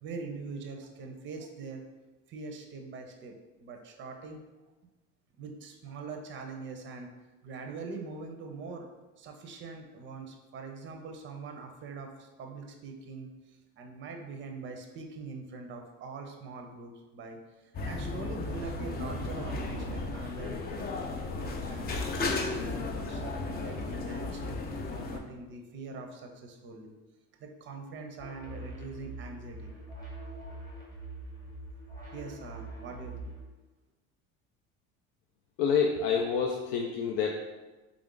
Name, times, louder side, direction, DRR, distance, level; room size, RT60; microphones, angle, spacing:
voice 1, 0.0-1.8 2.3-3.3 3.6-4.4 5.4-7.1 7.4-8.9 9.2-20.9 21.4-22.0 22.5-24.6 24.9-26.9 27.4-29.7 32.1-33.3, right 4 dB, 35° right, 3 dB, 0.5 m, -43 dB
sound 1, 17.7-25.2, left 3 dB, 30° left, 0.4 m, -34 dB
sound 2, 28.2-33.4, right 2 dB, 10° left, 0.8 m, -43 dB
voice 2, 35.6-37.4, left 6 dB, 85° left, 1 dB, 0.5 m, -27 dB
3.5 x 2.4 x 3.7 m, 1.2 s
cardioid pair, 120°, 34 cm